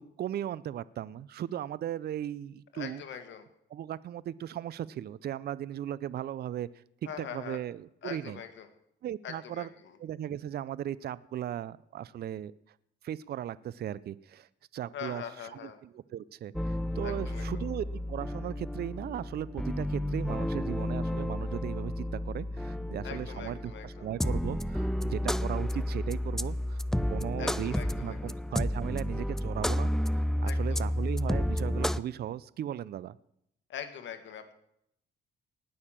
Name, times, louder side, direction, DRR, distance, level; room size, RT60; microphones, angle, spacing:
voice 1, 0.0-3.0 3.7-6.8 7.2-8.4 9.0-9.7 10.0-12.5 13.0-15.2 15.6-26.8 27.1-33.2, right 11 dB, 55° right, 19 dB, 0.5 m, -37 dB
voice 2, 2.7-3.5 7.1-7.6 8.0-8.7 9.2-10.0 14.9-15.8 17.0-17.7 23.0-24.1 27.4-28.4 30.4-30.9 33.7-34.5, left 8 dB, 70° left, 7 dB, 1.8 m, -43 dB
sound 1, 16.5-32.0, left 1 dB, ahead, 0.4 m, -31 dB
19.0 x 6.5 x 7.3 m, 0.76 s
cardioid pair, 90°, 20 cm